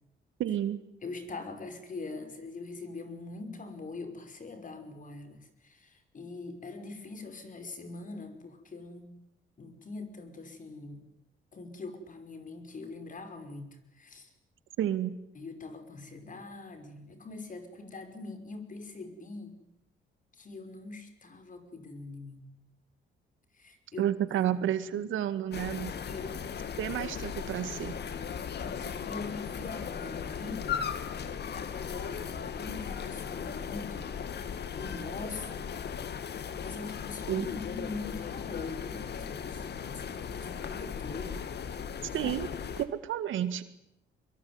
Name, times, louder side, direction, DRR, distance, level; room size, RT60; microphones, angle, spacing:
voice 1, 0.4-0.8 14.8-15.2 24.0-26.0 26.8-28.0 37.3-37.5 42.1-42.5 42.8-43.6, right 11 dB, 80° right, 12 dB, 2.0 m, -30 dB
voice 2, 1.0-9.1 9.6-11.1 11.5-14.3 15.3-19.6 20.3-22.5 23.5-24.1 24.9-25.1 26.0-26.4 28.6-30.9 31.5-34.1 34.8-35.7 36.6-41.4 42.2-42.3, left 3 dB, 40° left, 8 dB, 5.5 m, -43 dB
sound 1, 25.5-42.9, left 7 dB, 55° left, 2.3 m, -37 dB
24.5 x 22.5 x 9.7 m, 0.83 s
cardioid pair, 90°, 20 cm